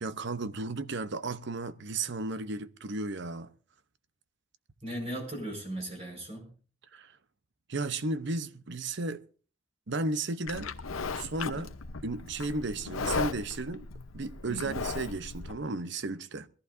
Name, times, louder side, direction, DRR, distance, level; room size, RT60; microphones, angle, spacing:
voice 1, 0.0-3.5 6.9-7.1 7.7-9.2 9.9-10.7 11.1-11.8 12.0-13.9 14.1-16.5, right 3 dB, 60° right, 0.8 m, -34 dB
voice 2, 4.8-6.5 14.5-14.8, right 1 dB, 30° right, 5.0 m, -37 dB
Livestock farm animals working animals, 10.5-15.5, left 4 dB, 85° left, 0.9 m, -36 dB
22.0 x 14.5 x 2.6 m
head